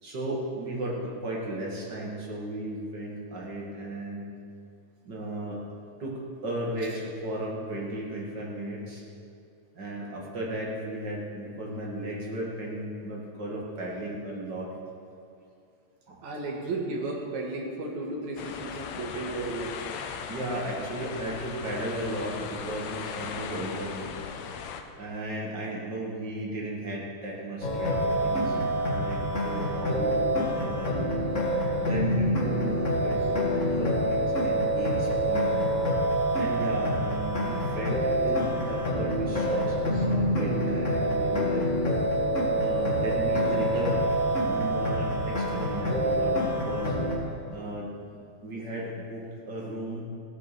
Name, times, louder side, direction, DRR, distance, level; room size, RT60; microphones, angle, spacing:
voice 1, 0.0-4.2 5.0-5.6 6.0-9.0 9.7-14.7 16.1-16.4 20.3-24.1 25.0-28.6 28.9-31.1 31.8-35.5 36.3-41.7 42.6-44.1 44.4-47.0 47.5-50.0, right 1 dB, 40° right, -3 dB, 2.5 m, -35 dB
voice 2, 16.2-19.8, right 2 dB, 75° right, -1 dB, 3.2 m, -34 dB
sound 1, 18.4-24.8, left 7 dB, 75° left, 1.9 m, -38 dB
sound 2, 27.6-47.2, equal, 30° left, 1.8 m, -26 dB
16.5 x 8.5 x 6.3 m, 2.4 s
omnidirectional pair, 3.3 m